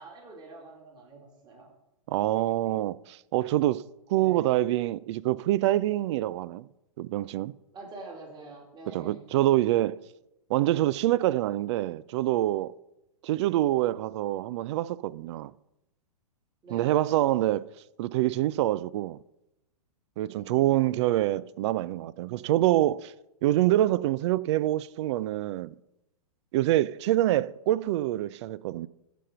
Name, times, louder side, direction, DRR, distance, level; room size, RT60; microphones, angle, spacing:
voice 1, 0.0-1.7 4.1-4.5 7.7-9.2 16.6-17.3 20.2-20.7, right 3 dB, 25° right, 2.7 m, -46 dB
voice 2, 2.1-3.8 4.1-6.7 7.0-7.5 8.9-10.0 10.5-12.7 13.2-15.5 16.7-17.6 18.0-19.2 20.2-23.1 23.4-25.7 26.5-28.9, right 14 dB, 50° right, 0.4 m, -26 dB
13.5 x 5.2 x 5.6 m
hypercardioid pair, 120°, 19 cm